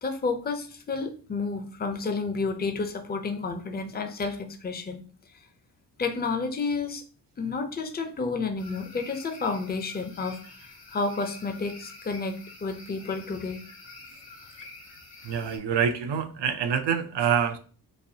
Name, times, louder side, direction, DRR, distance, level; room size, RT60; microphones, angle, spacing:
voice 1, 0.0-5.0 6.0-7.0 7.4-10.4 10.9-13.6, left 4 dB, 25° left, 6 dB, 0.5 m, -30 dB
sound 1, 8.6-15.6, left 3 dB, 80° left, 1.7 m, -48 dB
voice 2, 15.2-17.6, right 7 dB, 70° right, 8 dB, 0.6 m, -26 dB
4.1 x 2.6 x 2.7 m, 0.40 s
wide cardioid pair, 110°, 43 cm